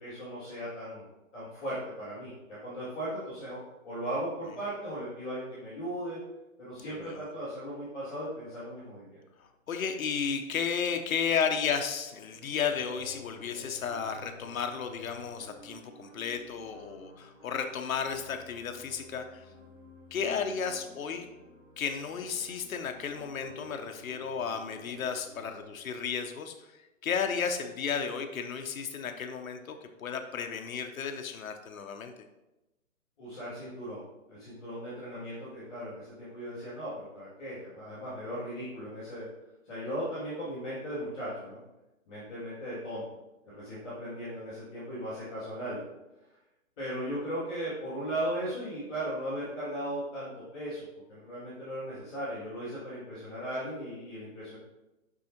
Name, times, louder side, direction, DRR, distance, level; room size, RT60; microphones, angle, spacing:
voice 1, 0.0-3.6 3.8-6.2 6.6-9.2 33.2-39.3 39.6-41.6 42.1-43.0 43.5-45.8 46.8-54.6, equal, 5° left, -21 dB, 0.5 m, -37 dB
voice 2, 6.8-7.3 9.4-19.4 20.1-21.3 21.8-26.7 27.0-32.1, left 6 dB, 75° left, 6 dB, 0.8 m, -33 dB
sound 1, 12.3-25.6, left 1 dB, 25° right, 2.0 m, -52 dB
6.2 x 5.5 x 2.9 m, 0.98 s
hypercardioid pair, 155°, 41 cm